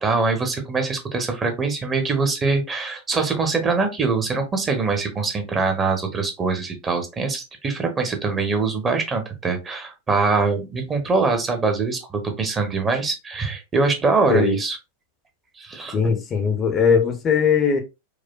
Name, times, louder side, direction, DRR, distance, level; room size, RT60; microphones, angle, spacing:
voice 1, 0.0-14.8 15.6-16.0, right 4 dB, 20° right, 0.8 m, -23 dB
voice 2, 15.9-17.8, left 6 dB, 25° left, 0.6 m, -19 dB
4.8 x 2.2 x 2.2 m
figure-of-eight pair, 90°, 0 cm